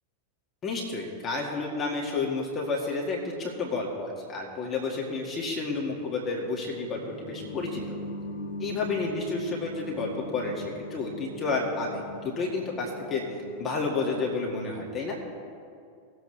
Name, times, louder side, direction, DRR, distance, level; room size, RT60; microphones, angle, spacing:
voice 1, 0.6-7.8 8.6-10.6 10.9-13.2 13.6-15.2, left 3 dB, 25° left, -2 dB, 2.0 m, -30 dB
sound 1, 5.6-14.3, left 2 dB, 65° left, 1.9 m, -41 dB
19.5 x 7.9 x 3.3 m, 2.4 s
figure-of-eight pair, 90°, 0 cm